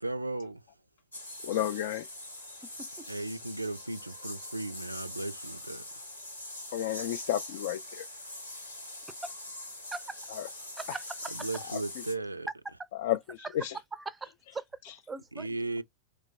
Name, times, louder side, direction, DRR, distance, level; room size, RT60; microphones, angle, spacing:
voice 1, 0.0-0.6 3.1-5.8 11.3-12.5 15.4-15.8, right 2 dB, 85° right, 0.3 m, -36 dB
sound 1, 1.1-12.1, left 1 dB, 85° left, 1.1 m, -43 dB
voice 2, 1.4-2.1 6.7-8.0 10.3-10.5 10.9-11.0 11.7-11.8 13.0-13.2 13.5-13.8 14.9-15.0, left 12 dB, 55° left, 0.3 m, -31 dB
voice 3, 10.8-11.5 12.6-12.7 13.9-14.7 15.1-15.6, right 4 dB, 15° right, 0.4 m, -40 dB
3.2 x 2.2 x 3.9 m
figure-of-eight pair, 90°, 0 cm